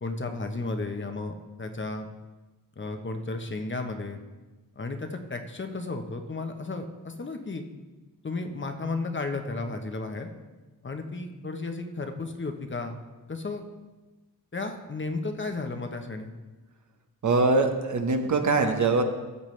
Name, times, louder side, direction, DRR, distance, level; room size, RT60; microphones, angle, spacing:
voice 1, 0.0-2.1 2.8-4.2 4.8-7.6 8.2-10.3 10.8-13.0 13.3-13.6 14.5-16.3, left 3 dB, 30° left, 5 dB, 0.9 m, -33 dB
voice 2, 17.2-19.0, right 3 dB, 55° right, 6 dB, 1.0 m, -23 dB
13.5 x 7.3 x 3.2 m, 1.2 s
cardioid pair, 90°, 36 cm